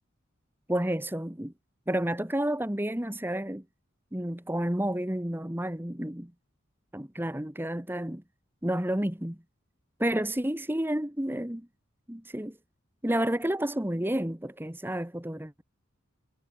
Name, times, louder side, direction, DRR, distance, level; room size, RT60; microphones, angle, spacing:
voice 1, 0.7-1.5 1.9-3.6 4.1-6.3 6.9-8.2 8.6-9.4 10.0-11.7 12.1-12.6 13.0-15.6, right 1 dB, 10° right, 1.3 m, -30 dB
head